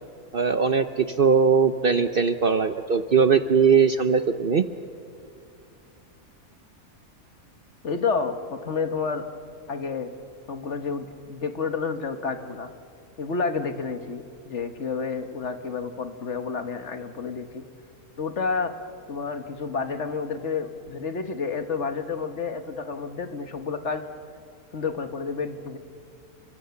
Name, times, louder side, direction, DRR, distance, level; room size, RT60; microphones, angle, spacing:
voice 1, 0.3-4.7, right 6 dB, 45° right, 9 dB, 0.8 m, -20 dB
voice 2, 7.8-9.3 9.7-10.1 10.5-12.7 13.2-17.6 18.2-18.7 19.1-24.0 24.7-25.8, left 5 dB, 55° left, 8 dB, 1.5 m, -30 dB
30.0 x 24.0 x 7.1 m, 2.5 s
omnidirectional pair, 1.5 m